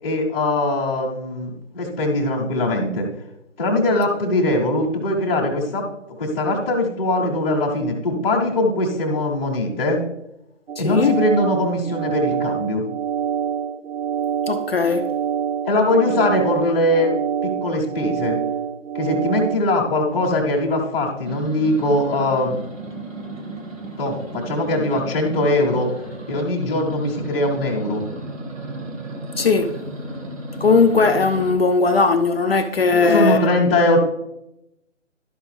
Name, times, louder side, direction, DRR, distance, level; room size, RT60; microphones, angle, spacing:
voice 1, 0.0-3.1 3.6-5.9 6.2-10.0 10.8-12.8 15.6-17.1 17.4-18.4 18.9-22.6 24.0-25.9 26.3-28.1 33.0-34.0, left 1 dB, 10° left, 0.9 m, -21 dB
sound 1, 10.7-19.6, right 8 dB, 65° right, 0.5 m, -26 dB
voice 2, 10.8-11.2 14.5-15.2 29.4-29.8 30.6-33.5, left 4 dB, 50° left, 0.5 m, -18 dB
sound 2, 21.2-31.5, right 2 dB, 80° right, 1.4 m, -34 dB
12.0 x 5.0 x 3.2 m
figure-of-eight pair, 155°, 38 cm